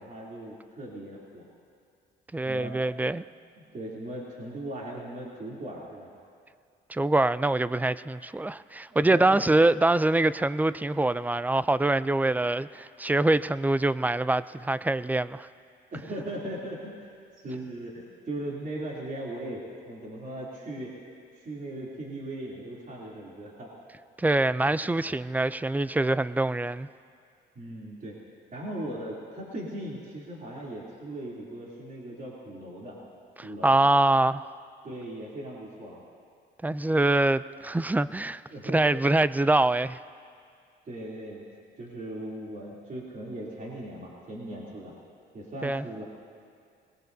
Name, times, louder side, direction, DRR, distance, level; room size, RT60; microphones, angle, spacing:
voice 1, 0.0-1.4 2.4-2.8 3.5-6.1 8.9-9.6 15.9-16.9 17.4-20.9 21.3-23.7 27.5-28.2 28.5-33.0 33.4-33.8 34.8-36.0 38.5-39.0 40.9-41.5 41.8-44.9 45.3-46.0, right 1 dB, 45° right, 3.0 m, -38 dB
voice 2, 2.3-3.2 6.9-15.5 24.2-26.9 33.4-34.5 36.6-38.4 38.7-40.0 45.6-45.8, right 2 dB, 10° right, 0.3 m, -24 dB
26.5 x 20.0 x 2.7 m
cardioid pair, 90°, 20 cm